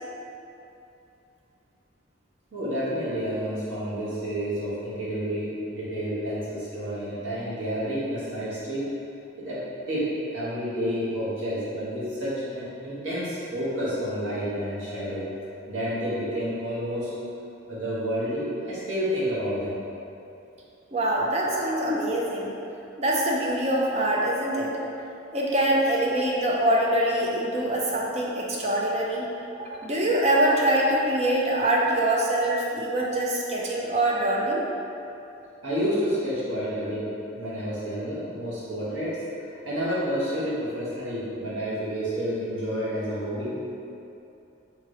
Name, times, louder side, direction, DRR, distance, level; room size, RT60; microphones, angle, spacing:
voice 1, 2.5-8.9 9.4-9.6 9.9-15.3 15.7-17.1 17.7-19.8 35.6-37.1 37.3-43.7, equal, 80° right, -9 dB, 1.5 m, -29 dB
voice 2, 20.9-22.5 23.0-24.8 25.3-29.3 29.6-34.6, right 1 dB, 35° right, -3 dB, 0.5 m, -24 dB
3.6 x 3.0 x 4.7 m, 2.8 s
head